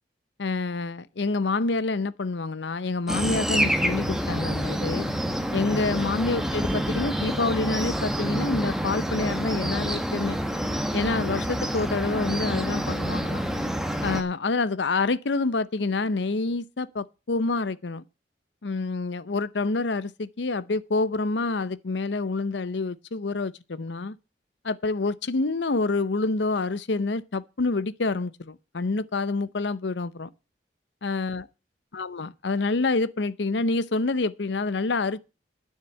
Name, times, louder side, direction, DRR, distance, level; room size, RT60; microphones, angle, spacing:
voice 1, 0.4-5.1 5.5-10.4 10.9-13.4 14.0-18.0 18.6-24.2 24.6-30.3 31.0-31.5 31.9-35.2, left 3 dB, 80° left, 0.7 m, -27 dB
sound 1, 3.1-14.2, equal, 5° right, 1.2 m, -27 dB
9.8 x 6.6 x 8.3 m
head